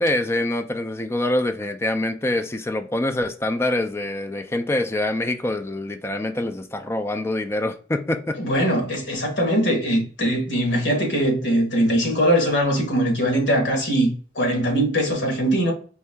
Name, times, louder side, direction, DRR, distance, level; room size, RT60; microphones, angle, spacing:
voice 1, 0.0-8.4, left 1 dB, 15° left, 0.4 m, -25 dB
voice 2, 8.4-15.7, equal, 85° left, 1.4 m, -21 dB
4.5 x 2.7 x 3.3 m
head